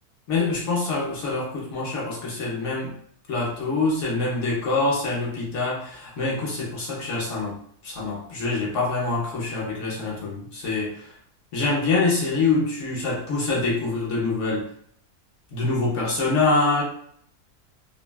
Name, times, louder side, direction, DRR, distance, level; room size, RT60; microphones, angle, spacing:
voice 1, 0.3-2.9 3.3-7.5 7.8-11.1 11.5-14.7 15.5-16.8, left 3 dB, 60° left, -4 dB, 0.9 m, -25 dB
3.3 x 2.2 x 2.2 m, 0.64 s
omnidirectional pair, 1.6 m